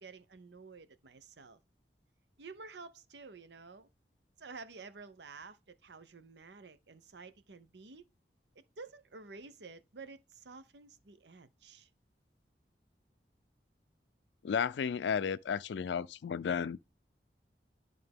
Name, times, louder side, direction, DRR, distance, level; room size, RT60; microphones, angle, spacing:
voice 1, 0.0-1.6 2.4-3.9 4.4-8.1 8.8-11.9, right 4 dB, 85° right, 0.8 m, -51 dB
voice 2, 14.4-16.9, left 7 dB, 90° left, 0.3 m, -33 dB
11.0 x 3.6 x 3.5 m
head